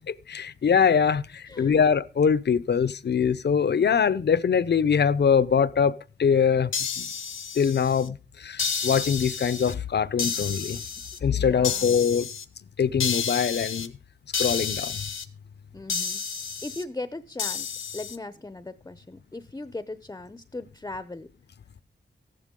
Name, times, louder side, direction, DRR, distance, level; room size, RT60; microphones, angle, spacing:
voice 1, 0.1-6.7 7.0-7.1 7.6-10.8 11.2-12.3 12.8-13.9 14.4-15.0, left 7 dB, 60° left, 0.6 m, -23 dB
voice 2, 1.5-1.8 11.3-12.0 15.7-21.3, left 2 dB, 15° left, 0.6 m, -38 dB
sound 1, 6.7-8.1 8.6-9.7 10.2-11.2 11.6-12.4 13.0-13.9 14.3-15.2 15.9-16.8 17.4-18.2, left 6 dB, 85° left, 1.0 m, -31 dB
14.5 x 11.0 x 3.7 m
wide cardioid pair, 80°, 20 cm